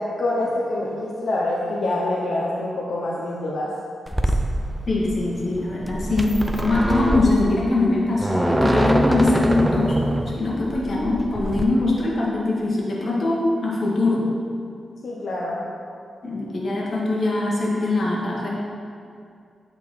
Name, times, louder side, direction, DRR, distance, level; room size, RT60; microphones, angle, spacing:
voice 1, 0.0-3.7 15.0-15.6, left 2 dB, 70° left, -5 dB, 0.8 m, -25 dB
sound 1, 4.1-11.6, right 1 dB, 10° right, 0.4 m, -24 dB
voice 2, 4.9-10.0 10.3-14.4 16.2-18.5, left 2 dB, 50° left, -5 dB, 1.6 m, -22 dB
8.3 x 3.9 x 4.3 m, 2.4 s
wide cardioid pair, 105°, 0 cm